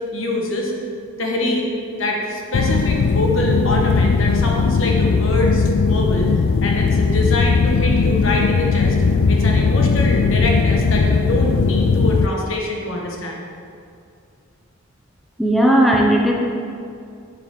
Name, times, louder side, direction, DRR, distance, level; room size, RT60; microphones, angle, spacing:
voice 1, 0.1-0.7 1.2-1.7 2.0-6.3 6.6-9.0 9.3-13.5, left 1 dB, 70° left, -1 dB, 1.4 m, -24 dB
sound 1, 2.5-12.3, left 4 dB, 90° left, 0.4 m, -18 dB
voice 2, 15.4-16.3, right 1 dB, ahead, -2 dB, 0.7 m, -15 dB
9.2 x 8.2 x 3.7 m, 2.4 s
head